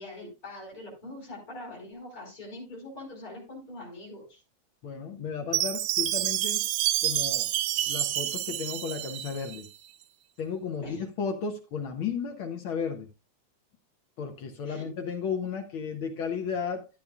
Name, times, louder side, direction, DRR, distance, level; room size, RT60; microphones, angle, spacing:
voice 1, 0.0-4.4 10.8-11.0 14.7-14.9, left 1 dB, 30° left, 4.7 m, -43 dB
voice 2, 4.8-6.6 7.0-7.5 7.8-9.7 10.4-13.1 14.2-16.9, left 6 dB, 70° left, 1.2 m, -34 dB
Chime, 5.5-9.7, right 13 dB, 75° right, 1.6 m, -28 dB
12.5 x 8.8 x 2.4 m
omnidirectional pair, 3.4 m